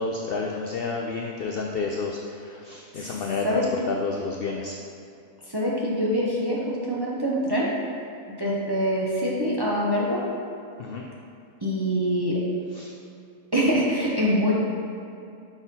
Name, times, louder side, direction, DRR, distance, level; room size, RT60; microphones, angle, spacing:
voice 1, 0.0-2.2 2.7-3.6 3.9-4.7 10.8-11.0 12.8-12.9, left 4 dB, 75° left, 0 dB, 0.5 m, -29 dB
voice 2, 5.5-7.7 8.4-10.2 11.6-12.4 13.5-14.5, equal, 25° right, -5 dB, 0.6 m, -24 dB
5.8 x 4.2 x 5.3 m, 2.5 s
omnidirectional pair, 1.5 m